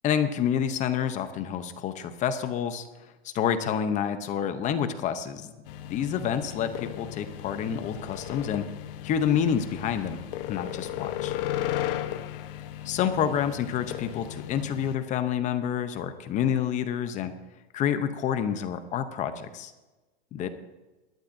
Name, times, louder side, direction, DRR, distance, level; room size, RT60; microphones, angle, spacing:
voice 1, 0.0-2.9 3.2-5.5 5.9-8.6 9.0-11.3 12.8-17.3 17.7-19.7 20.3-20.5, left 8 dB, 25° left, 10 dB, 0.7 m, -28 dB
sound 1, 5.7-14.9, left 12 dB, 55° left, 1.1 m, -35 dB
19.5 x 11.5 x 2.7 m, 1.1 s
supercardioid pair, 150°, 33 cm